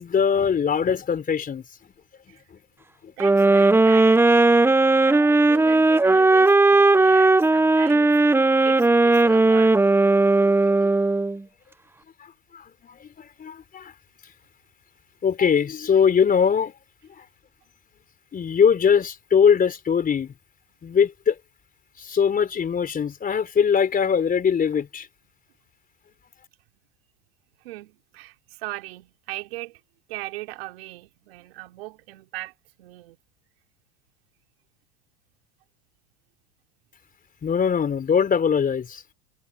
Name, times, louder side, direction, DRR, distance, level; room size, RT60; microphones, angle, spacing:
voice 1, 0.0-1.6 9.2-9.4 12.5-13.9 15.2-16.7 17.2-17.3 18.3-20.3 20.8-21.4 22.0-25.1 37.4-39.0, left 7 dB, 30° left, 4.1 m, -21 dB
sound 1, 3.2-11.4, right 2 dB, 10° right, 1.0 m, -17 dB
voice 2, 3.2-8.1 8.6-9.8 27.6-29.8 30.1-32.5 32.8-33.2, right 19 dB, 80° right, 5.1 m, -38 dB
hypercardioid pair, 95°, 30 cm